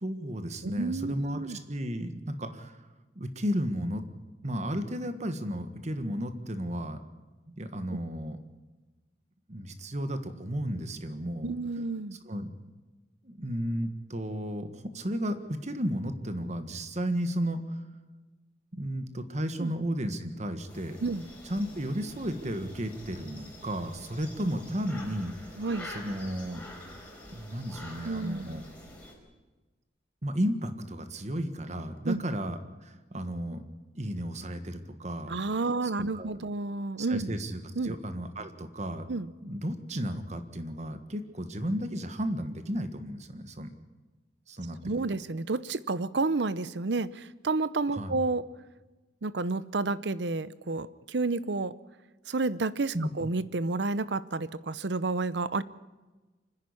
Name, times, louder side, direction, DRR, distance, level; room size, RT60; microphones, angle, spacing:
voice 1, 0.0-2.8 3.1-4.0 4.4-7.0 7.5-8.4 9.5-11.5 12.2-12.5 13.2-17.8 18.7-21.0 21.4-25.3 25.8-26.6 27.3-28.6 30.2-33.6 33.9-35.3 36.1-36.3 37.0-39.1 39.4-43.7 44.5-45.0 47.9-48.2 52.9-53.1, equal, 40° right, 9 dB, 1.5 m, -33 dB
voice 2, 0.6-1.6 7.9-8.0 11.4-12.2 19.6-19.7 21.0-21.3 25.6-25.9 28.0-28.6 32.0-32.2 35.3-37.3 37.8-38.0 39.1-39.3 44.8-48.4 49.2-51.7 52.3-55.6, right 3 dB, 70° right, 17 dB, 0.7 m, -30 dB
sound 1, 20.7-29.1, left 1 dB, 10° left, 4.3 m, -47 dB
25.0 x 10.5 x 9.9 m, 1.2 s
head